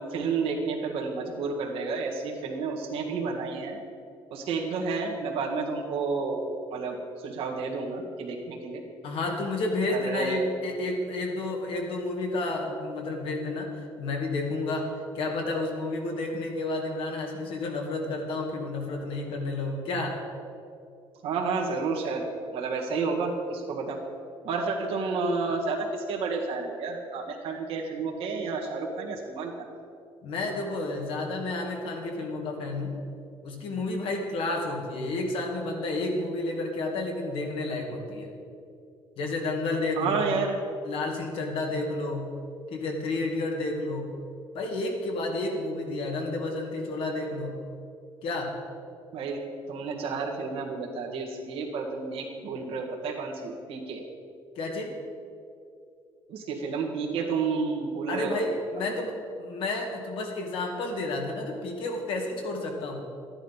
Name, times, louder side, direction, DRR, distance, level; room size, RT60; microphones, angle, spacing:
voice 1, 0.0-3.8 4.3-6.5 6.7-8.8 9.9-10.4 21.2-22.3 22.5-24.0 24.4-29.7 40.0-40.6 49.1-54.0 56.3-58.6, right 4 dB, 75° right, -1 dB, 1.8 m, -31 dB
voice 2, 9.0-13.7 14.0-14.9 15.1-20.2 30.2-33.0 33.4-38.3 39.2-40.4 40.8-42.3 42.7-44.1 44.5-47.6 48.2-48.6 54.6-54.9 58.1-63.0, left 2 dB, 65° left, 2 dB, 2.3 m, -31 dB
13.0 x 10.0 x 5.7 m, 2.5 s
cardioid pair, 125°, 10 cm